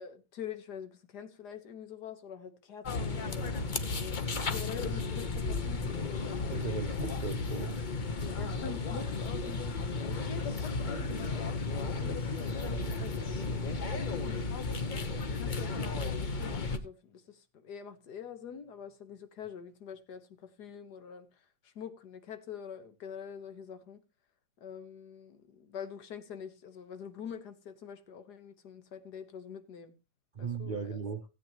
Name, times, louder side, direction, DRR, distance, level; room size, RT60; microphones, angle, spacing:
voice 1, 0.0-3.6 4.0-6.4 8.4-13.5 13.7-15.0 15.3-24.0 24.6-30.0 30.4-31.0, left 7 dB, 70° left, 1.7 m, -45 dB
sound 1, 2.8-16.8, left 3 dB, 40° left, 0.7 m, -34 dB
voice 2, 6.5-7.8 13.0-13.1 30.3-31.2, right 5 dB, 50° right, 0.5 m, -37 dB
17.0 x 8.5 x 2.9 m
omnidirectional pair, 1.9 m